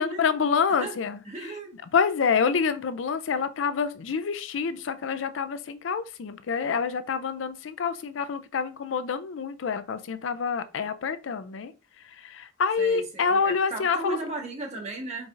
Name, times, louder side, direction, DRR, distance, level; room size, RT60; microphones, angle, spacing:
voice 1, 0.0-1.2 1.9-11.7 12.2-14.2, left 6 dB, 85° left, 0.4 m, -27 dB
voice 2, 1.2-1.7 12.8-15.3, right 2 dB, 35° right, 1.3 m, -35 dB
4.6 x 3.7 x 2.6 m
head